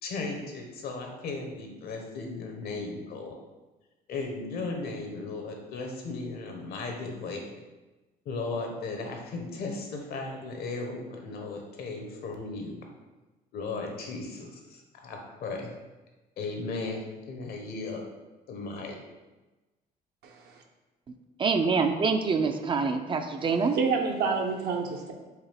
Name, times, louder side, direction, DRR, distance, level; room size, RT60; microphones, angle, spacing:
voice 1, 0.0-3.3 4.1-7.4 8.2-12.8 13.5-15.7 16.4-18.0 18.5-19.0, left 3 dB, 65° left, 0.9 m, -36 dB
voice 2, 20.2-20.6 23.7-25.1, right 5 dB, 70° right, 0.8 m, -28 dB
voice 3, 21.4-23.8, right 4 dB, 30° right, 0.4 m, -25 dB
4.7 x 3.1 x 3.4 m
cardioid pair, 110°, 17 cm